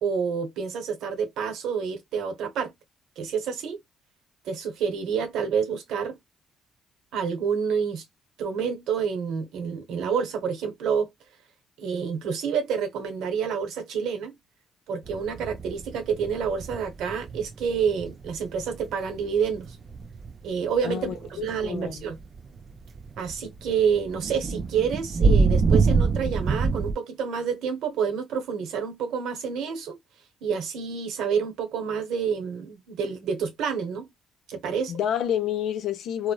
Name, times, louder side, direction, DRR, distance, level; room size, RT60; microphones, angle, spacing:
voice 1, 0.0-2.7 3.2-3.8 4.4-6.2 7.1-8.0 8.4-11.1 11.8-14.3 14.9-19.8 20.4-22.2 23.2-30.0 30.4-34.1 34.5-34.9, right 6 dB, 85° right, 0.8 m, -28 dB
sound 1, 15.1-20.5 20.9-26.9, right 4 dB, 40° right, 0.4 m, -25 dB
voice 2, 20.8-22.0 34.9-36.3, left 10 dB, 75° left, 0.6 m, -29 dB
2.9 x 2.0 x 2.3 m
cardioid pair, 90°, 0 cm